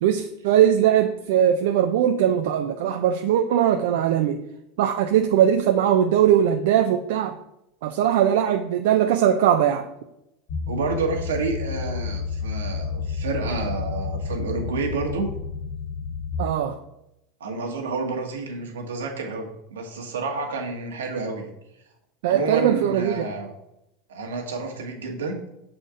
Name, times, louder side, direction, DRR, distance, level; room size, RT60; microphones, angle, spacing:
voice 1, 0.0-4.4 4.8-7.4 7.8-9.9 16.4-16.8 22.2-23.3, right 10 dB, 75° right, 5 dB, 0.5 m, -20 dB
sound 1, 10.5-16.3, left 5 dB, 55° left, 2.1 m, -30 dB
voice 2, 10.7-15.3 17.4-21.5 22.3-23.5 24.1-25.3, right 4 dB, 90° right, 1 dB, 1.5 m, -29 dB
6.3 x 4.3 x 4.9 m, 0.84 s
hypercardioid pair, 100°, 0 cm